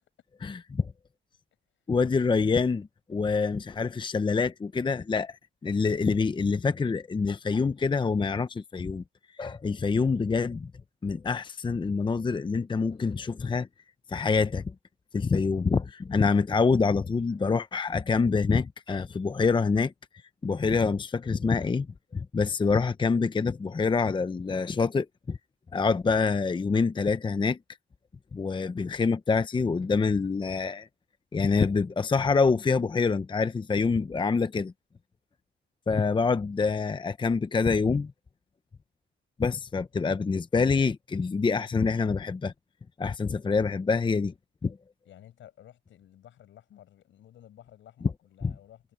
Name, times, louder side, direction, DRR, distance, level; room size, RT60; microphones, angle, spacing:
voice 1, 0.4-0.9 1.9-9.0 9.4-10.7 11.0-13.7 14.1-14.6 15.1-19.9 20.4-21.9 22.1-25.4 25.7-27.6 28.3-30.9 31.3-34.7 35.9-38.1 39.4-42.5 43.0-44.3 44.6-44.8 48.4-48.5, left 4 dB, 25° left, 0.7 m, -26 dB
voice 2, 45.0-48.9, left 11 dB, 75° left, 7.6 m, -53 dB
cardioid pair, 90°, 20 cm